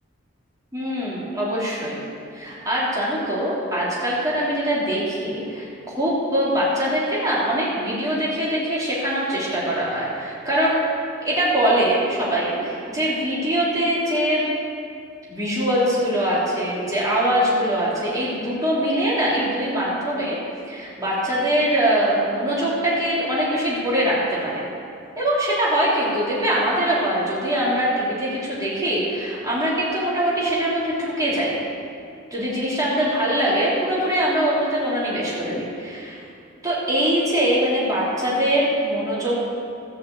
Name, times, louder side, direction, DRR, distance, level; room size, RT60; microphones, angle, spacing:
voice 1, 0.7-2.0 2.3-5.7 6.0-10.8 11.2-14.4 15.3-20.4 20.7-24.6 25.2-31.6 32.3-36.2 36.6-39.4, right 1 dB, 15° right, -8 dB, 3.4 m, -22 dB
14.5 x 5.8 x 8.0 m, 2.4 s
head